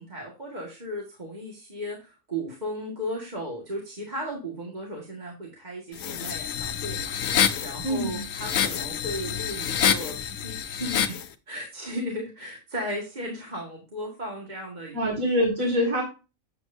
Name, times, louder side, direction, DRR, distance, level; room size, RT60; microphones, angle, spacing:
voice 1, 0.0-7.2 7.6-15.3, equal, 35° right, -1 dB, 1.9 m, -36 dB
sound 1, 6.0-11.3, left 8 dB, 75° left, 1.1 m, -27 dB
voice 2, 7.8-8.2 14.9-16.0, equal, 80° right, -3 dB, 2.6 m, -24 dB
8.4 x 7.7 x 2.6 m, 0.30 s
omnidirectional pair, 1.4 m